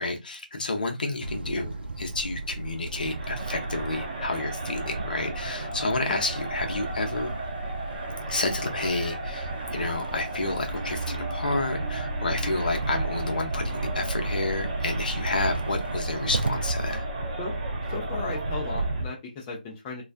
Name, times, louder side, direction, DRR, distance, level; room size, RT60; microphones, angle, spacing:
voice 1, 0.0-7.3 8.3-17.0, left 2 dB, 65° left, 0.6 m, -30 dB
sound 1, 1.2-19.1, right 2 dB, 90° right, 0.4 m, -33 dB
Crowd, 3.0-19.2, right 2 dB, 35° right, 0.7 m, -37 dB
voice 2, 17.9-20.0, left 3 dB, 20° left, 0.4 m, -35 dB
2.2 x 2.2 x 2.5 m
figure-of-eight pair, 155°, 5 cm